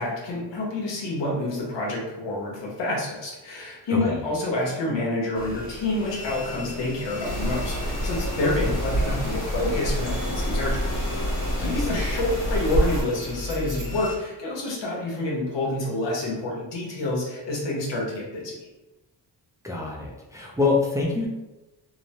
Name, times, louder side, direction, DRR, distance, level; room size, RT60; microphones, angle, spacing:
voice 1, 0.0-10.8 11.6-18.6, left 2 dB, 75° left, -3 dB, 1.0 m, -28 dB
voice 2, 3.9-4.2 11.6-12.0 19.6-21.3, left 3 dB, 10° right, -3 dB, 0.4 m, -26 dB
sound 1, 5.3-14.2, left 1 dB, 20° left, 0.9 m, -35 dB
sound 2, 7.2-13.0, equal, 40° left, 1.2 m, -27 dB
Tambourine, 9.2-14.2, right 6 dB, 75° right, 0.6 m, -50 dB
2.9 x 2.0 x 2.7 m, 1.0 s
cardioid pair, 75°, 43 cm